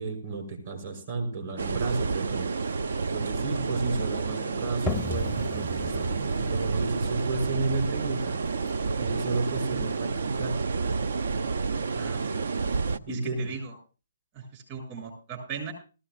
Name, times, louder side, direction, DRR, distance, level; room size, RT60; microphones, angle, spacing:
voice 1, 0.0-2.5 3.1-8.4 9.0-10.6 13.1-13.5, right 3 dB, 50° right, 2 dB, 6.0 m, -32 dB
sound 1, 1.6-13.0, right 4 dB, 65° right, 0.6 m, -30 dB
sound 2, 4.9-10.3, left 3 dB, 10° left, 0.6 m, -38 dB
voice 2, 11.9-12.5 13.1-13.7 14.3-15.7, right 6 dB, 35° right, 2 dB, 7.3 m, -38 dB
19.0 x 15.5 x 2.5 m, 0.35 s
figure-of-eight pair, 135°, 0 cm